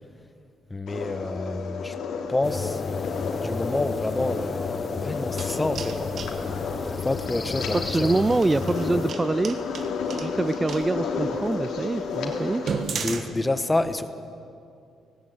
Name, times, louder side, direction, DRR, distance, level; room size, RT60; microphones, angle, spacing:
voice 1, 0.7-1.9 2.3-2.8 3.4-4.6 5.0-6.1 6.8-8.1 13.0-14.1, left 2 dB, 15° left, 11 dB, 1.2 m, -28 dB
sound 1, 0.9-12.8, left 5 dB, 80° left, 3.0 m, -32 dB
sound 2, 2.4-9.1, left 4 dB, 30° left, 0.9 m, -32 dB
sound 3, 5.2-6.4 7.9-10.9 11.5-11.6 12.0-12.1 12.5-13.2, right 5 dB, 55° right, 1.6 m, -34 dB
voice 2, 7.7-9.6 10.2-12.6, right 2 dB, 20° right, 14 dB, 0.4 m, -25 dB
18.0 x 17.5 x 9.1 m, 2.5 s
cardioid pair, 90°, 0 cm